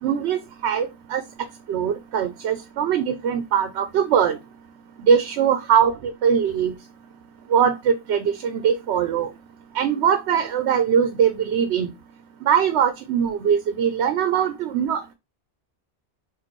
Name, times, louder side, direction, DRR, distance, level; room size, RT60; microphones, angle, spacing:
voice 1, 0.0-1.2 1.7-4.4 5.0-6.7 7.5-9.3 9.7-11.9 12.4-15.1, right 8 dB, 85° right, 0.9 m, -21 dB
4.1 x 2.5 x 4.4 m
omnidirectional pair, 1.1 m